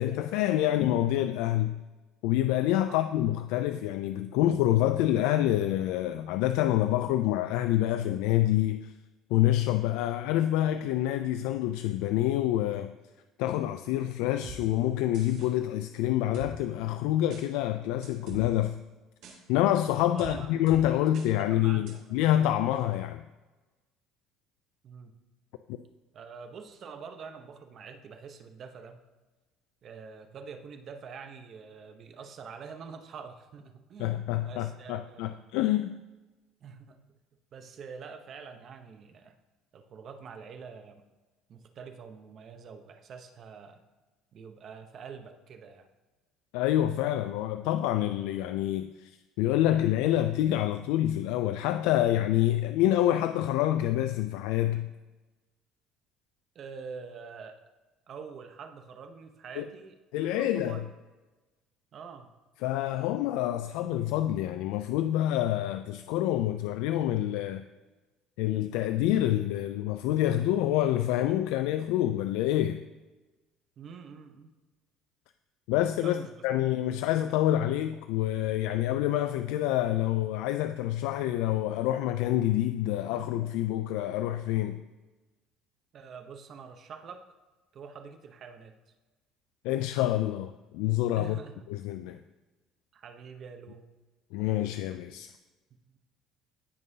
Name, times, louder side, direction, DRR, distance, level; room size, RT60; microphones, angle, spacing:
voice 1, 0.0-1.8 2.2-8.9 9.3-12.9 13.4-18.8 19.5-23.2 34.0-36.0 46.5-54.9 59.6-59.7 60.1-60.8 62.6-67.6 68.4-72.8 75.7-84.8 89.6-91.4 91.7-92.2 94.3-95.3, left 13 dB, 85° left, 0.3 m, -27 dB
voice 2, 2.8-3.1 20.1-20.5 20.9-22.2 24.8-25.2 26.1-29.0 29.8-35.6 36.6-37.0 37.5-39.4 39.7-41.0 41.5-43.8 44.3-45.9 56.5-57.6 58.1-60.8 61.9-62.3 73.8-74.5 76.0-76.8 85.9-87.2 87.7-88.8 91.1-91.7 92.9-93.8 95.9-96.0, right 5 dB, 40° right, 0.8 m, -46 dB
sound 1, 14.4-14.6 15.1-15.5 16.3-16.5 17.3-17.4 18.0-18.4 19.2-19.4 20.2-20.3 20.7-20.8 21.1-21.3 21.9-22.0, right 4 dB, 65° right, 3.1 m, -42 dB
15.5 x 5.4 x 2.7 m
cardioid pair, 155°, 0 cm